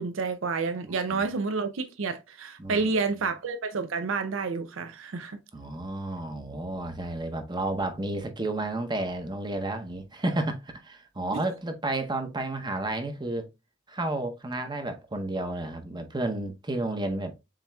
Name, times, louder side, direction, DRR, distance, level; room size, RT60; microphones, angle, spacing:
voice 1, 0.0-5.4 11.3-11.4, right 4 dB, 85° right, 0.6 m, -29 dB
voice 2, 5.5-13.5 13.9-17.3, right 2 dB, 20° right, 0.7 m, -31 dB
7.2 x 2.8 x 2.2 m
head